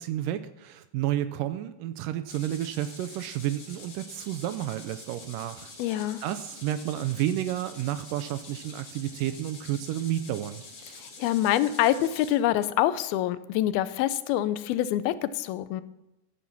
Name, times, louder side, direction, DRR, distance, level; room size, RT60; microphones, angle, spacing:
voice 1, 0.0-10.6, right 12 dB, 80° right, 12 dB, 2.0 m, -31 dB
sound 1, 2.3-12.3, left 3 dB, 45° left, 3.3 m, -46 dB
voice 2, 5.8-6.2 11.0-15.8, left 13 dB, 90° left, 14 dB, 2.6 m, -26 dB
15.0 x 9.4 x 6.0 m, 0.89 s
omnidirectional pair, 4.2 m